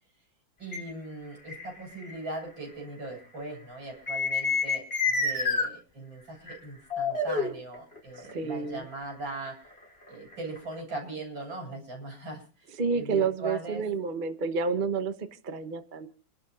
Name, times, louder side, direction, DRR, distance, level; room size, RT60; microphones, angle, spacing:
voice 1, 0.6-9.6 10.1-12.7 13.0-13.8, right 2 dB, 75° right, 0 dB, 8.0 m, -40 dB
sound 1, 0.7-0.8 1.5-2.1 4.1-5.7 6.5-6.6 6.9-8.3 9.5-10.8, left 4 dB, 30° left, 5.1 m, -28 dB
voice 2, 8.3-8.8 12.8-16.1, right 5 dB, 30° right, 8 dB, 1.0 m, -29 dB
29.5 x 12.0 x 2.6 m, 0.37 s
omnidirectional pair, 2.1 m